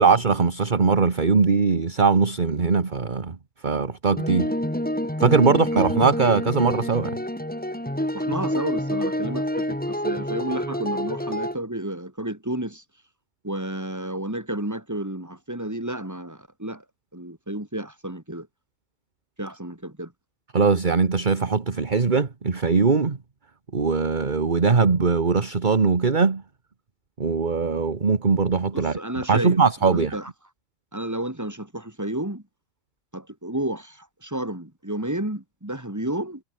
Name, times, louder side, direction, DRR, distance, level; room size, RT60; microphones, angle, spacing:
voice 1, 0.0-3.4 3.6-4.5 5.2-7.2 20.5-23.2 23.7-26.4 27.2-28.9 29.3-30.2, right 5 dB, 35° right, 1.6 m, -21 dB
sound 1, 4.2-11.5, equal, 5° left, 2.6 m, -27 dB
voice 2, 8.1-12.8 13.4-16.8 17.1-18.5 19.4-20.1 28.7-30.3 30.9-32.4 33.1-36.4, right 1 dB, 10° right, 3.2 m, -31 dB
omnidirectional pair, 1.5 m